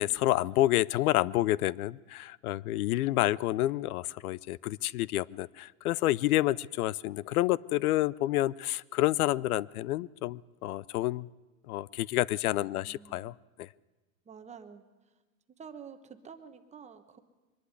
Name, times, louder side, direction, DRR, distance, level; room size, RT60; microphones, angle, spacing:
voice 1, 0.0-11.3 11.7-13.7, left 15 dB, 90° left, 23 dB, 0.6 m, -29 dB
voice 2, 12.5-13.4 14.2-15.1 15.6-17.2, right 6 dB, 15° right, 8 dB, 1.1 m, -49 dB
23.0 x 11.5 x 9.7 m, 1.2 s
supercardioid pair, 140°, 43 cm